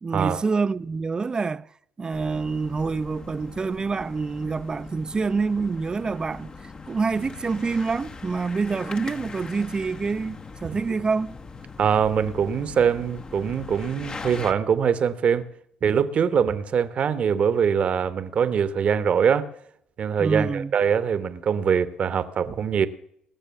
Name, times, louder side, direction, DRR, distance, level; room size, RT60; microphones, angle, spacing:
voice 1, 0.0-1.6 2.0-6.5 6.9-11.3 20.2-20.7, right 4 dB, 30° right, 0.5 m, -26 dB
sound 1, 2.1-14.5, left 4 dB, 35° left, 0.9 m, -41 dB
voice 2, 11.8-15.4 15.8-19.5 20.0-22.9, right 7 dB, 50° right, 1.0 m, -23 dB
20.0 x 6.7 x 7.1 m
supercardioid pair, 65°, 3 cm